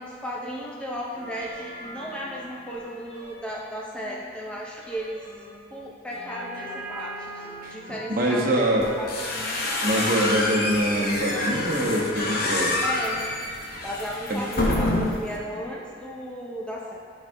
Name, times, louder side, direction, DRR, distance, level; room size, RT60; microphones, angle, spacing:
voice 1, 0.0-5.3 5.7-8.7 9.0-9.1 12.8-13.3 13.8-17.0, equal, 5° left, -4 dB, 0.5 m, -35 dB
sound 1, 1.1-12.6, equal, 30° left, 1.1 m, -40 dB
voice 2, 8.2-8.9 9.8-12.8 14.3-14.4, right 1 dB, 45° right, -2 dB, 0.9 m, -24 dB
sound 2, 8.8-15.4, left 2 dB, 50° left, 0.8 m, -27 dB
12.0 x 4.1 x 2.6 m, 2.3 s
head